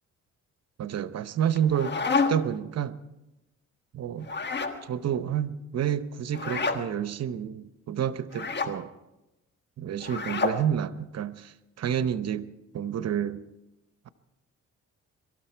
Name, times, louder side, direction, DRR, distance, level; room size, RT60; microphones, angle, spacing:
voice 1, 0.8-1.9 2.3-3.0 3.9-4.3 4.8-8.9 9.8-13.4, right 9 dB, 55° right, 13 dB, 0.8 m, -29 dB
sound 1, 1.5-2.6 4.2-4.8 6.3-6.8 8.3-8.7 10.0-10.6, left 4 dB, 35° left, 1.4 m, -28 dB
23.0 x 13.0 x 4.5 m, 0.96 s
cardioid pair, 90°, 30 cm